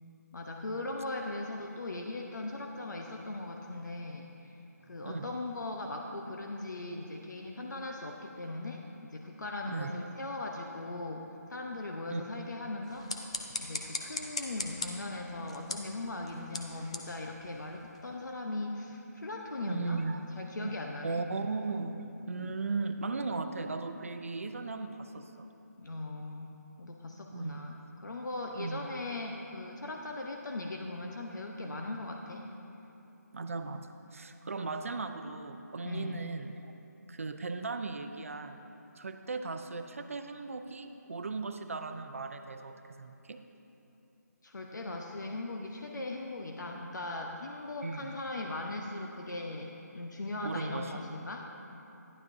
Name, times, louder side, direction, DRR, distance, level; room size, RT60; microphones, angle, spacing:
voice 1, 0.3-4.6 4.9-13.1 13.6-21.3 22.3-22.5 25.8-26.5 26.8-27.7 28.0-32.5 34.7-34.8 35.8-36.2 44.4-51.8, left 2 dB, 85° left, 1 dB, 0.9 m, -39 dB
voice 2, 4.8-5.3 9.7-10.0 12.1-12.2 19.7-20.3 20.6-20.7 21.0-25.5 27.3-27.7 28.6-28.8 33.3-36.7 37.1-38.6 39.0-43.4 47.8-48.2 50.4-51.0, right 3 dB, 50° right, 7 dB, 0.5 m, -37 dB
sound 1, 12.8-18.1, left 3 dB, 20° left, 0.4 m, -41 dB
12.0 x 11.0 x 2.7 m, 2.9 s
figure-of-eight pair, 175°, 10 cm